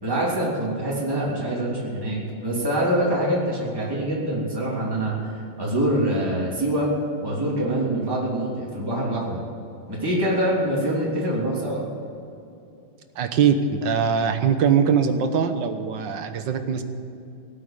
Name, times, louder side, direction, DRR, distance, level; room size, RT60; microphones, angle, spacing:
voice 1, 0.0-6.9 7.2-9.4 9.9-11.8, right 1 dB, 10° right, -5 dB, 3.1 m, -25 dB
voice 2, 13.2-16.8, right 7 dB, 70° right, 8 dB, 1.7 m, -22 dB
18.0 x 8.6 x 8.8 m, 2.7 s
omnidirectional pair, 2.1 m